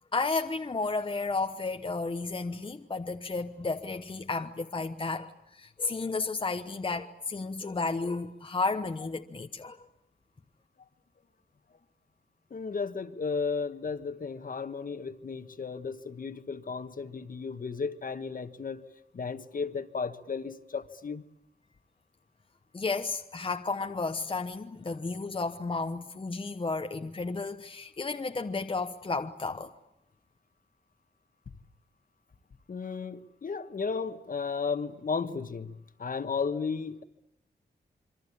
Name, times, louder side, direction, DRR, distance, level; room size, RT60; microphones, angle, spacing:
voice 1, 0.1-9.9 22.7-29.7, left 3 dB, 30° left, 1.0 m, -32 dB
voice 2, 12.5-18.8 19.1-21.2 32.7-37.0, left 5 dB, 50° left, 1.5 m, -34 dB
27.0 x 24.5 x 8.6 m
wide cardioid pair, 135°, 18 cm